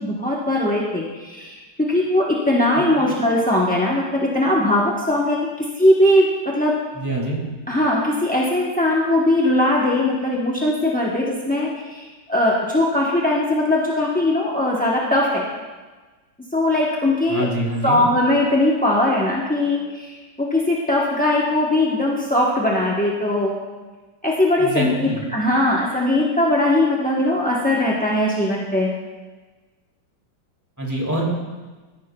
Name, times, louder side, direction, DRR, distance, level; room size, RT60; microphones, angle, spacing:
voice 1, 0.0-5.4 5.8-6.8 7.7-12.0 12.3-15.5 16.5-17.5 17.8-23.6 24.2-28.9, left 1 dB, 10° left, -5 dB, 0.5 m, -20 dB
voice 2, 6.9-7.4 17.3-18.0 24.6-25.2 30.8-31.2, equal, 10° right, -2 dB, 2.0 m, -25 dB
16.0 x 10.0 x 2.3 m, 1.3 s
omnidirectional pair, 2.0 m